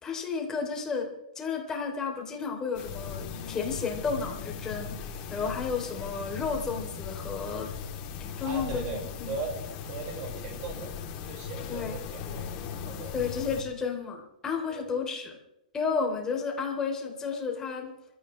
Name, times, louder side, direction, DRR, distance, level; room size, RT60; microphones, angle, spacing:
voice 1, 0.0-7.7 8.2-9.3 11.7-12.0 13.1-15.4 15.7-17.9, left 5 dB, 15° left, 1 dB, 3.3 m, -32 dB
sound 1, 2.7-13.6, left 6 dB, 30° left, 3.2 m, -38 dB
voice 2, 8.4-9.0 9.3-9.6 9.9-10.9 11.3-12.5 12.8-13.1 14.8-14.9, right 4 dB, 35° right, 1 dB, 6.0 m, -38 dB
26.0 x 14.0 x 3.3 m, 0.90 s
hypercardioid pair, 155°, 4 cm